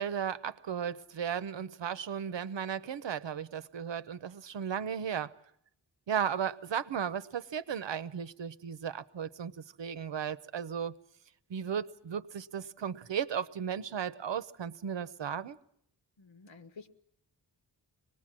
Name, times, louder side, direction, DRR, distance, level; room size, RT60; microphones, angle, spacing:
voice 1, 0.0-5.3 6.1-9.5 9.8-10.9 11.5-15.6, right 8 dB, 75° right, 0.9 m, -35 dB
voice 2, 16.2-16.9, left 4 dB, 90° left, 1.7 m, -51 dB
25.0 x 20.0 x 7.5 m
wide cardioid pair, 140°, 44 cm